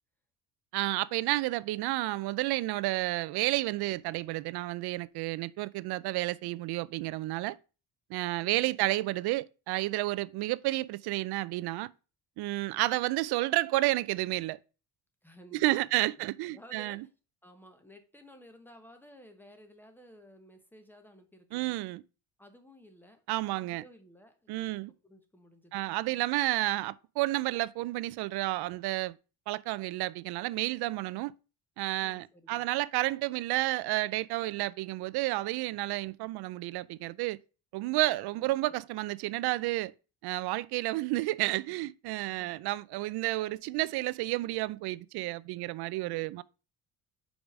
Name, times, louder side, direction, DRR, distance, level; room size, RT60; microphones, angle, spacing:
voice 1, 0.7-7.6 8.1-11.9 12.4-14.6 15.5-17.0 21.5-22.0 23.3-23.8 24.5-24.9 25.7-29.1 29.5-31.3 31.8-37.4 37.7-39.9 40.2-46.4, right 18 dB, 85° right, 0.5 m, -31 dB
voice 2, 8.4-8.8 15.2-16.1 16.4-17.1 17.4-21.8 22.4-23.2 23.5-26.4 32.0-32.7 38.3-38.9 42.3-42.6 46.0-46.3, equal, 5° left, 0.9 m, -56 dB
5.3 x 5.0 x 5.9 m
cardioid pair, 170°, 37 cm